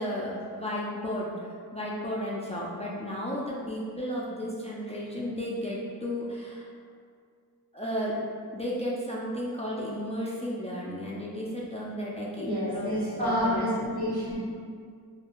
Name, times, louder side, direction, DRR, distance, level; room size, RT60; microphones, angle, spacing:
voice 1, 0.0-6.7 7.7-8.1 8.5-14.0, equal, 20° left, -6 dB, 0.3 m, -34 dB
voice 2, 12.3-14.3, equal, 75° right, -9 dB, 1.3 m, -28 dB
2.4 x 2.2 x 2.9 m, 2.1 s
wide cardioid pair, 55°, 38 cm